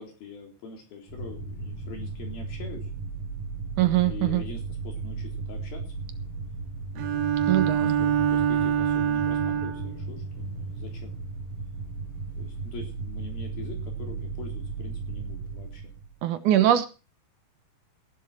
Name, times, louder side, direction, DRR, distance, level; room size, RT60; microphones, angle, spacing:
voice 1, 0.0-2.9 4.0-6.1 6.9-11.2 12.4-15.9, left 4 dB, 90° left, 2 dB, 5.6 m, -44 dB
sound 1, 1.1-16.2, right 4 dB, 60° left, 8.5 m, -36 dB
voice 2, 3.8-4.4 7.5-8.0 16.2-16.9, right 12 dB, 70° right, 10 dB, 2.4 m, -22 dB
Bowed string instrument, 7.0-10.0, right 9 dB, 85° right, 3.1 m, -25 dB
16.5 x 11.5 x 4.3 m, 0.33 s
omnidirectional pair, 4.1 m